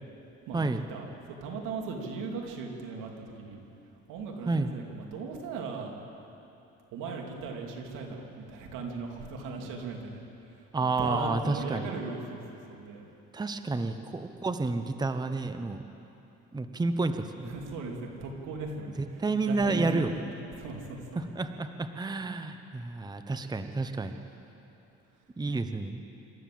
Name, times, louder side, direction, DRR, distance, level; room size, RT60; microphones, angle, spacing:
voice 1, 0.5-1.1 1.4-3.6 4.1-5.9 6.9-10.2 10.8-12.4 12.7-13.0 17.4-20.3 20.6-21.3, right 3 dB, 85° right, 1 dB, 2.8 m, -38 dB
voice 2, 10.7-11.9 13.3-15.8 16.5-17.5 19.0-20.1 21.2-24.2 25.4-26.0, right 3 dB, 15° right, 8 dB, 0.9 m, -30 dB
26.0 x 13.5 x 7.7 m, 2.9 s
cardioid pair, 110°, 30 cm